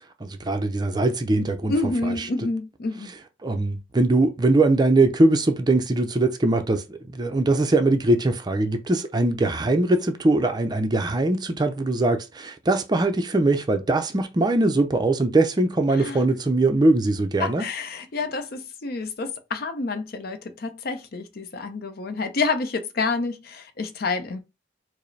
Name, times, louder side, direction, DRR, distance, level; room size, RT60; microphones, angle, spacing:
voice 1, 0.2-2.3 3.4-17.7, right 2 dB, 20° right, 0.4 m, -21 dB
voice 2, 1.7-3.1 15.9-16.2 17.4-24.4, left 3 dB, 55° left, 0.5 m, -28 dB
4.8 x 2.0 x 3.2 m
head